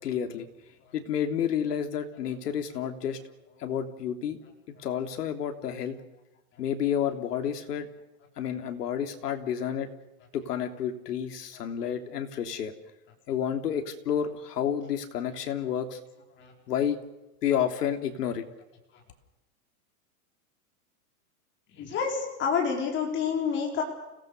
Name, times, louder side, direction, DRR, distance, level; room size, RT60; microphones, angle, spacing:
voice 1, 0.0-0.5 0.9-3.2 3.6-4.4 4.8-6.0 6.6-7.9 8.4-9.9 10.3-12.7 13.3-16.0 16.7-17.0 17.4-18.4, left 9 dB, 80° left, 6 dB, 3.2 m, -30 dB
voice 2, 21.7-23.8, left 6 dB, 25° left, 1 dB, 4.8 m, -28 dB
29.5 x 18.0 x 6.6 m, 0.98 s
supercardioid pair, 160°, 47 cm